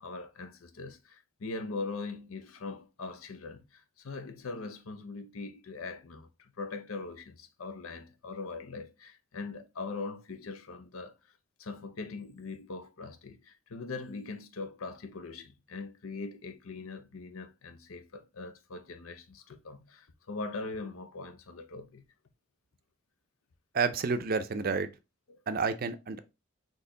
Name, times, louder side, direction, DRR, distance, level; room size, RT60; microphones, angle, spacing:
voice 1, 0.0-11.2 11.6-22.0 25.3-25.4, left 3 dB, 90° left, 0.7 m, -41 dB
voice 2, 23.7-24.9 25.5-26.2, right 4 dB, 45° right, 0.5 m, -30 dB
4.4 x 3.0 x 3.8 m
head